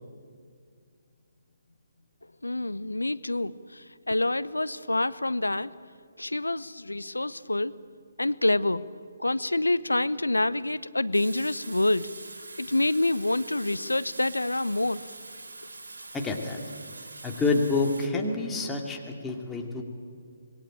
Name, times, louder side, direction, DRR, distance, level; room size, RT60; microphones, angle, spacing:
voice 1, 2.4-5.7 6.2-7.7 8.2-8.8 9.2-12.1 12.6-15.0, left 2 dB, 85° left, 17 dB, 0.8 m, -27 dB
Water tap faucet / Sink (filling or washing), 11.1-18.1, right 2 dB, 65° right, 3.8 m, -44 dB
voice 2, 16.1-16.6 17.2-19.8, left 3 dB, 10° left, 1 dB, 2.5 m, -28 dB
25.5 x 21.0 x 8.9 m, 2.2 s
figure-of-eight pair, 140°, 0 cm